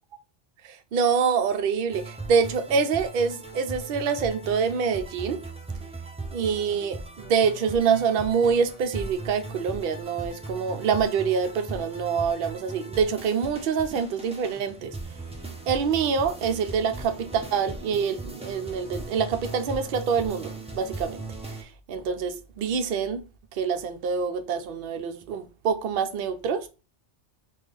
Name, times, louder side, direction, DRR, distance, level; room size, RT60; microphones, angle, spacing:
voice 1, 0.7-5.4 6.3-15.0 15.7-21.3 21.6-23.2 23.5-26.7, right 6 dB, 60° right, 0.6 m, -26 dB
sound 1, 1.9-21.6, right 2 dB, 10° right, 0.3 m, -39 dB
3.6 x 2.3 x 3.4 m
omnidirectional pair, 1.2 m